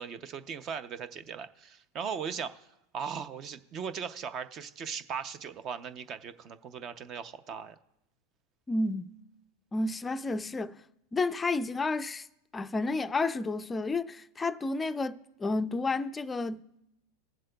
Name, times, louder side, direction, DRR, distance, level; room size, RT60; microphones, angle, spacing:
voice 1, 0.0-2.6 2.9-7.8, right 6 dB, 40° right, 0.5 m, -38 dB
voice 2, 8.7-9.1 9.7-10.8 11.1-12.3 12.5-16.6, left 3 dB, 15° left, 0.4 m, -31 dB
20.0 x 7.5 x 2.2 m
hypercardioid pair, 110°, 0 cm